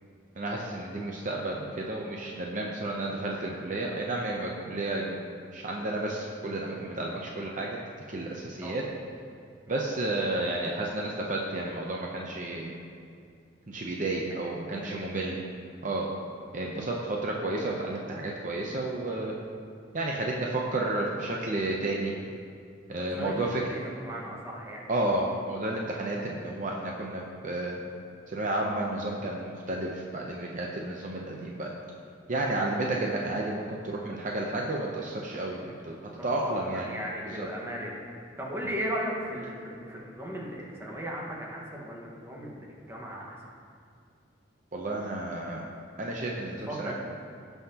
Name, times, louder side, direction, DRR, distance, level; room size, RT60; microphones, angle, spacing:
voice 1, 0.3-5.2 5.5-7.8 8.1-8.8 9.7-12.7 13.7-15.3 15.8-16.1 16.5-19.3 19.9-22.1 22.9-23.6 24.9-27.8 28.3-31.7 32.3-36.8 37.3-37.5 44.7-45.6 46.0-46.9, right 2 dB, 45° right, -1 dB, 0.7 m, -31 dB
voice 2, 23.0-23.3 23.7-24.8 36.2-38.0 38.4-43.4 46.6-46.9, equal, 15° right, -3 dB, 1.5 m, -37 dB
17.0 x 5.7 x 2.9 m, 2.4 s
head